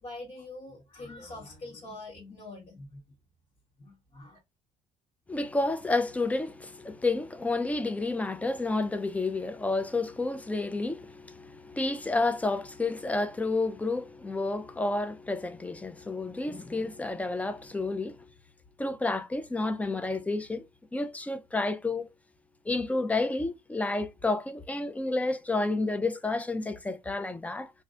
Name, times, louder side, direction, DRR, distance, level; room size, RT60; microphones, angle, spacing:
voice 1, 0.0-3.0 3.8-4.4, left 2 dB, 45° left, 1.3 m, -44 dB
voice 2, 5.3-18.3 18.8-20.7 20.9-22.1 22.7-27.7, left 2 dB, 10° left, 0.4 m, -30 dB
3.0 x 2.6 x 2.4 m
supercardioid pair, 90°, 13 cm